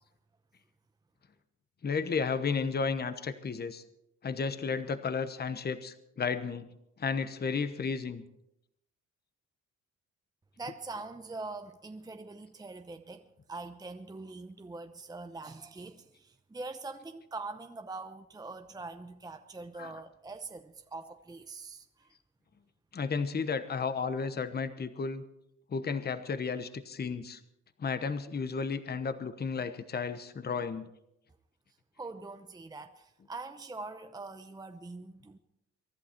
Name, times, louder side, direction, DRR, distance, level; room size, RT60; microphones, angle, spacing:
voice 1, 1.8-3.8 4.2-6.7 7.0-8.2 19.8-19.9 22.9-25.2 25.7-27.4 27.8-30.9, left 5 dB, 30° left, 11 dB, 1.0 m, -33 dB
voice 2, 10.6-22.1 32.0-35.4, right 3 dB, 15° right, 7 dB, 0.8 m, -43 dB
23.5 x 11.5 x 4.4 m, 0.83 s
cardioid pair, 90°, 30 cm